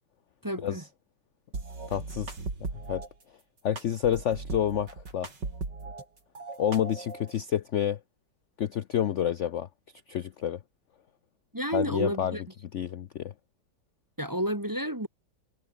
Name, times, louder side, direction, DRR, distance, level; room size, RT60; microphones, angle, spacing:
voice 1, 0.4-0.8 11.5-12.4 14.2-15.1, equal, 10° right, 1.2 m, -30 dB
sound 1, 1.5-3.1 3.8-6.0 6.3-7.3, right 3 dB, 60° right, 4.8 m, -38 dB
voice 2, 1.9-2.4 2.9-3.0 3.6-5.3 6.6-8.0 8.6-9.7 10.1-10.6 11.7-12.4 12.7-13.3, left 10 dB, 70° left, 0.7 m, -29 dB
omnidirectional pair, 2.1 m